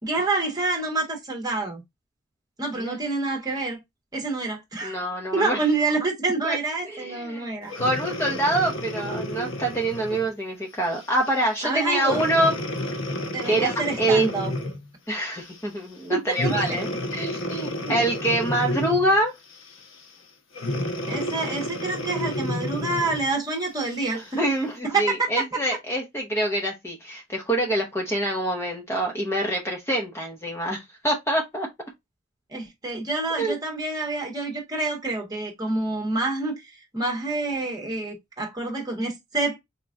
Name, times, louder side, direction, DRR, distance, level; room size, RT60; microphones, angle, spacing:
voice 1, 0.0-1.8 2.6-3.8 4.1-5.0 5.3-7.7 11.6-12.2 13.3-14.5 16.1-16.8 17.8-17.9 21.1-24.4 24.8-25.3 32.5-39.6, right 3 dB, 20° right, 1.3 m, -27 dB
voice 2, 4.8-5.6 6.4-6.6 6.8-7.5 7.8-12.6 13.4-14.3 15.1-19.4 24.1-31.7 33.4-33.6, right 1 dB, 15° left, 0.8 m, -25 dB
Breathing, 7.7-10.3 10.9-11.2 12.0-14.9 16.3-19.2 20.5-23.3 23.9-24.0, left 1 dB, 75° left, 1.0 m, -30 dB
4.4 x 3.0 x 2.4 m
head